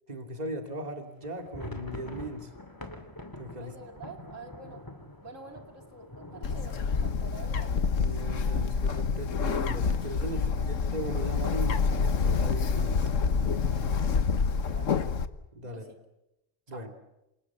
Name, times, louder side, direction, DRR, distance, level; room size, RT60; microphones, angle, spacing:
voice 1, 0.1-2.5 3.4-3.7 8.0-13.1 15.5-15.9 16.7-16.9, right 1 dB, 35° right, 5 dB, 2.9 m, -38 dB
sound 1, 1.2-8.9 9.2-9.3 9.6-9.8 10.4-10.9, left 1 dB, 15° left, 2.5 m, -45 dB
voice 2, 3.6-4.8 5.2-7.7 10.3-10.8 13.7-15.0 15.6-16.0 16.7-16.9, right 4 dB, 85° right, 5 dB, 3.0 m, -48 dB
Bird, 6.4-15.2, left 5 dB, 80° left, 1.5 m, -27 dB
27.5 x 27.0 x 7.3 m, 0.92 s
omnidirectional pair, 1.3 m